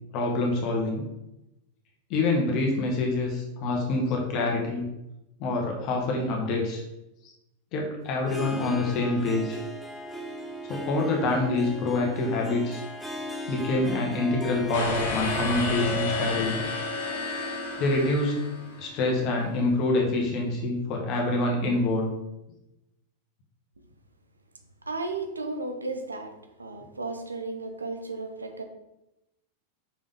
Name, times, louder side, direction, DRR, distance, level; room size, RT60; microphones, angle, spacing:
voice 1, 0.1-1.0 2.1-4.9 5.4-6.8 7.7-9.6 10.7-12.8 13.5-16.7 17.8-18.4 18.8-22.1, left 2 dB, 40° left, 1 dB, 1.4 m, -26 dB
Harp, 8.2-20.1, equal, 5° right, 0.9 m, -38 dB
sound 1, 14.7-18.9, left 3 dB, 60° left, 1.4 m, -31 dB
voice 2, 24.9-26.3 26.6-28.6, right 3 dB, 80° right, 6 dB, 0.8 m, -34 dB
5.8 x 5.4 x 3.5 m, 0.90 s
figure-of-eight pair, 90°, 0 cm